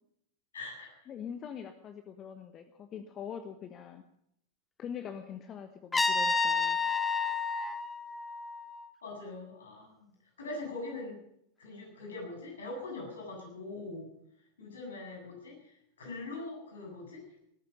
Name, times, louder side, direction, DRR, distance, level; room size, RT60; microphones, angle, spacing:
voice 1, 0.5-1.1 9.0-10.1 10.4-11.2 11.6-14.1 14.6-17.2, left 2 dB, 65° left, 1 dB, 7.3 m, -42 dB
voice 2, 1.1-4.0 4.8-6.8, left 8 dB, 30° left, 9 dB, 1.1 m, -43 dB
Trumpet, 5.9-8.9, left 4 dB, 10° left, 1.0 m, -30 dB
19.0 x 14.0 x 5.3 m, 0.73 s
figure-of-eight pair, 90°, 0 cm